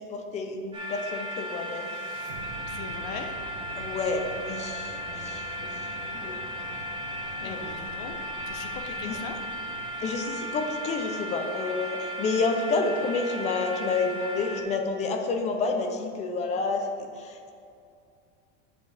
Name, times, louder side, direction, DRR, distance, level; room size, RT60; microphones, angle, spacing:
voice 1, 0.1-1.9 3.8-5.7 6.2-6.4 7.4-7.6 9.0-9.2 10.0-17.4, left 3 dB, 20° left, 5 dB, 0.4 m, -29 dB
sound 1, 0.7-14.6, equal, 15° right, 1.0 m, -36 dB
sound 2, 1.4-11.6, right 3 dB, 90° right, 1.5 m, -45 dB
voice 2, 2.7-3.3 7.4-8.2 8.5-9.4, left 6 dB, 50° left, 5 dB, 0.8 m, -40 dB
8.0 x 7.8 x 3.3 m, 2.5 s
supercardioid pair, 165°, 35 cm